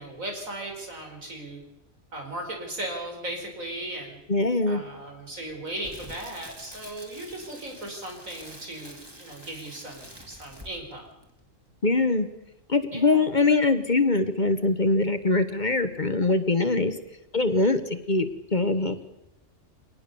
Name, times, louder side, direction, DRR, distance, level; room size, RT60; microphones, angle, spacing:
voice 1, 0.0-1.6 2.1-4.2 4.7-11.1 12.9-13.3, right 1 dB, 85° right, 2 dB, 5.5 m, -37 dB
voice 2, 4.3-4.8 11.8-12.3 12.7-16.9 17.3-19.0, left 3 dB, 35° left, 11 dB, 1.3 m, -23 dB
Crackle, 5.5-11.0 11.2-11.4, equal, 20° right, 2.8 m, -47 dB
24.5 x 19.0 x 6.9 m, 0.89 s
omnidirectional pair, 1.4 m